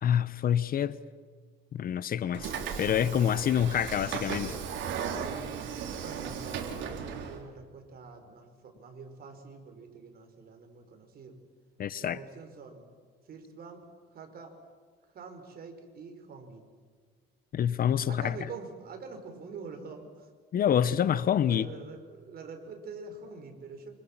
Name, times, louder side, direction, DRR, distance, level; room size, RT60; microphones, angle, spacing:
voice 1, 0.0-1.0 1.7-2.5 2.8-4.6 11.8-12.2 17.5-18.3 20.5-21.7, left 9 dB, 50° left, 0.9 m, -27 dB
Train / Sliding door, 2.3-7.4, right 7 dB, 75° right, 3.7 m, -36 dB
voice 2, 5.2-5.5 6.0-11.4 12.0-12.9 13.3-13.8 14.1-14.6 15.1-16.6 18.1-20.3 21.5-24.0, right 4 dB, 50° right, 5.0 m, -45 dB
26.5 x 26.5 x 7.5 m
cardioid pair, 115°, 20 cm